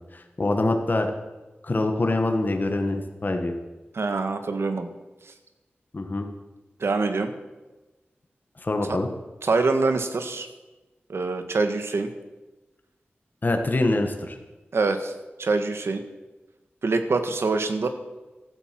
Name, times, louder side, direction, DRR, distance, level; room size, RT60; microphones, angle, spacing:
voice 1, 0.1-1.1 1.6-3.5 5.9-6.3 8.6-9.1 13.4-14.4, left 2 dB, 45° left, 4 dB, 1.7 m, -25 dB
voice 2, 3.9-4.9 6.8-7.3 8.9-9.0 9.4-10.5 11.1-12.1 14.7-15.1 15.4-16.0 16.8-17.9, right 3 dB, 80° right, 8 dB, 1.7 m, -24 dB
15.0 x 13.5 x 6.1 m, 1.1 s
wide cardioid pair, 85°, 4 cm